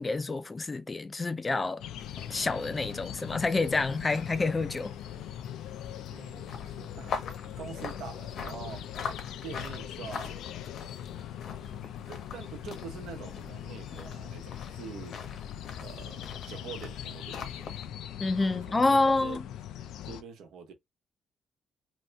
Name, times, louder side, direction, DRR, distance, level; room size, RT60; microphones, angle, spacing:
voice 1, 0.0-1.8 2.3-4.9 18.2-19.4, left 3 dB, 20° left, 0.4 m, -28 dB
sound 1, 1.8-20.2, left 10 dB, 90° left, 0.4 m, -41 dB
sound 2, 2.0-17.9, left 5 dB, 60° left, 0.9 m, -44 dB
voice 2, 6.1-7.2 7.6-8.9 9.4-10.4 11.6-11.8 12.1-15.2 15.8-17.7 18.5-19.4 20.0-20.7, right 6 dB, 85° right, 1.0 m, -45 dB
2.8 x 2.7 x 3.3 m
cardioid pair, 135°, 0 cm